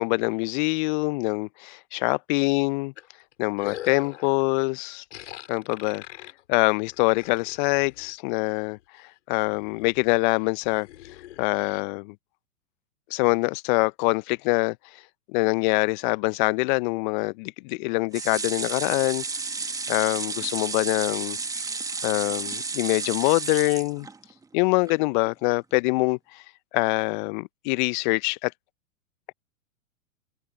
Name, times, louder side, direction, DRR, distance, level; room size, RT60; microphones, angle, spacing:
voice 1, 0.0-2.9 3.4-5.0 5.5-6.0 6.5-8.8 9.3-10.9 11.4-12.1 13.1-14.8 15.3-19.2 19.9-21.4 22.0-24.1 24.5-26.2 26.7-28.5, left 28 dB, 35° left, 0.9 m, -24 dB
sound 1, 3.0-4.4 5.1-8.1 8.6-9.0 9.3-11.8, left 13 dB, 55° left, 5.2 m, -43 dB
sound 2, 18.1-24.4 24.9-25.0 25.3-25.4, right 4 dB, 10° right, 2.0 m, -32 dB
figure-of-eight pair, 105°, 42 cm